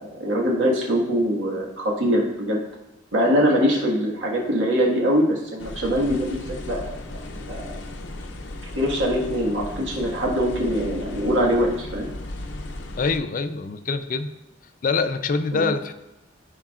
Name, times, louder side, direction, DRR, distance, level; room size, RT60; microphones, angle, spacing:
voice 1, 0.0-2.6 3.1-6.4 6.7-6.8 7.5-7.8 8.7-12.1 15.5-15.7, equal, 85° right, -2 dB, 1.7 m, -23 dB
sound 1, 5.6-13.2, left 1 dB, 80° left, 0.7 m, -35 dB
voice 2, 13.0-14.3 14.8-16.0, left 4 dB, 45° left, 10 dB, 0.4 m, -25 dB
14.0 x 4.7 x 2.4 m, 0.96 s
head